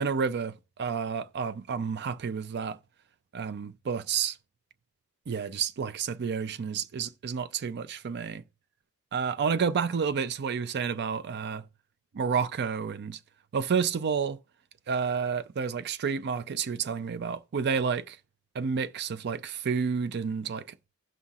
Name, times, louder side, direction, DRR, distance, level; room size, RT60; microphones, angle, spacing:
voice 1, 0.0-2.8 3.3-4.4 5.3-8.4 9.1-11.7 12.1-13.2 13.5-14.4 14.9-18.2 18.5-20.8, right 6 dB, 50° right, 0.4 m, -30 dB
16.5 x 5.6 x 2.4 m
head